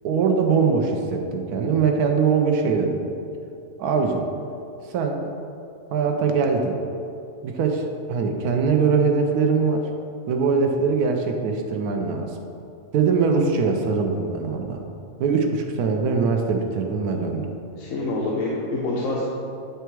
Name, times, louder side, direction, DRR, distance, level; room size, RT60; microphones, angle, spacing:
voice 1, 0.0-3.0 3.8-4.3 4.9-5.3 5.9-6.8 7.4-9.9 10.3-12.3 12.9-14.8 15.2-17.5, right 5 dB, 90° right, 3 dB, 1.2 m, -22 dB
voice 2, 17.8-19.3, left 2 dB, 65° left, -5 dB, 1.2 m, -26 dB
8.9 x 3.4 x 4.6 m, 2.6 s
omnidirectional pair, 1.6 m